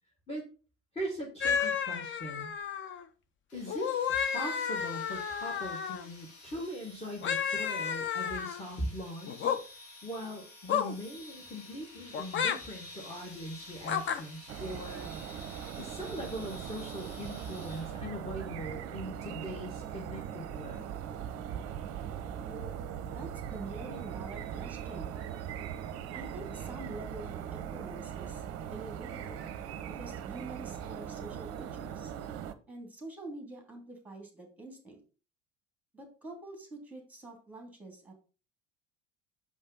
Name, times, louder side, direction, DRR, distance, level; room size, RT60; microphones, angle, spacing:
voice 1, 0.9-2.5 3.5-9.5 10.0-15.1 15.8-20.9, equal, 15° left, 0 dB, 1.8 m, -40 dB
sound 1, 1.4-3.0 3.7-6.1 7.2-8.6 9.3-9.6 10.7-11.0 12.1-12.6 13.8-14.2, left 7 dB, 30° left, 0.7 m, -32 dB
sound 2, 3.5-18.3, left 2 dB, 55° left, 2.9 m, -51 dB
sound 3, 14.5-32.5, right 9 dB, 40° right, 0.7 m, -40 dB
voice 2, 23.1-25.2 26.1-28.4 28.7-29.5 29.9-32.1 32.7-35.0 35.9-38.1, right 2 dB, 5° right, 3 dB, 2.3 m, -46 dB
6.2 x 5.3 x 4.0 m, 0.35 s
figure-of-eight pair, 65°, 37 cm